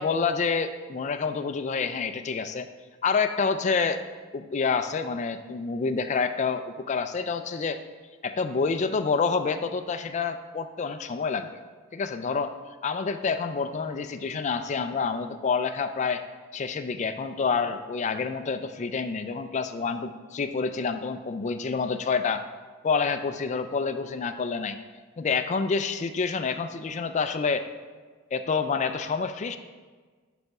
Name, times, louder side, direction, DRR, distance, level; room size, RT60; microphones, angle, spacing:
voice 1, 0.0-2.7 3.0-4.0 4.3-7.8 8.2-11.5 11.9-12.5 12.8-16.2 16.5-22.4 22.8-24.8 25.2-27.7 28.3-29.6, left 5 dB, 35° left, 9 dB, 0.3 m, -28 dB
10.5 x 4.1 x 3.5 m, 1.4 s
head